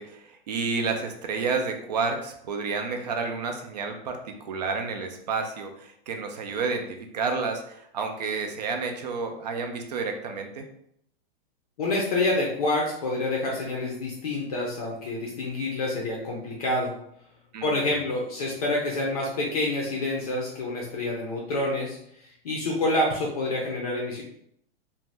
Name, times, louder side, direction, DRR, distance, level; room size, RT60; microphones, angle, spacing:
voice 1, 0.0-10.6 17.5-18.0, right 4 dB, 40° right, 4 dB, 0.4 m, -30 dB
voice 2, 11.8-16.9 17.6-24.2, left 2 dB, 40° left, -2 dB, 0.5 m, -27 dB
2.6 x 2.1 x 3.2 m, 0.71 s
hypercardioid pair, 165°, 31 cm